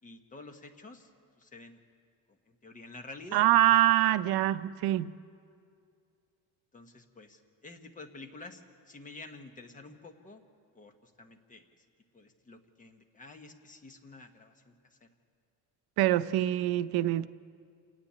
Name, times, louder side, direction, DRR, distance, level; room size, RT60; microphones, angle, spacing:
voice 1, 0.0-1.1 1.4-1.8 2.3-3.7 6.7-10.4 10.7-11.9 12.1-15.1, left 3 dB, 20° left, 6 dB, 1.1 m, -49 dB
voice 2, 3.3-5.1 16.0-17.3, right 14 dB, 80° right, 14 dB, 0.6 m, -25 dB
27.5 x 10.0 x 9.4 m, 2.3 s
cardioid pair, 170°, 37 cm